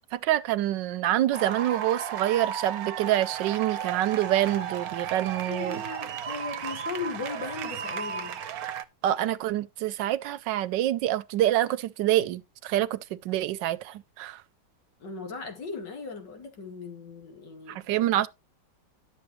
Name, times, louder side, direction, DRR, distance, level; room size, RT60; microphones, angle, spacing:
voice 1, 0.1-5.8 9.0-13.0 13.2-14.4 17.7-18.3, right 13 dB, 85° right, 1.3 m, -26 dB
sound 1, 1.3-8.9, right 8 dB, 65° right, 1.1 m, -34 dB
voice 2, 5.5-8.4 15.0-17.8, left 4 dB, 75° left, 2.5 m, -37 dB
11.0 x 7.4 x 3.1 m
omnidirectional pair, 1.9 m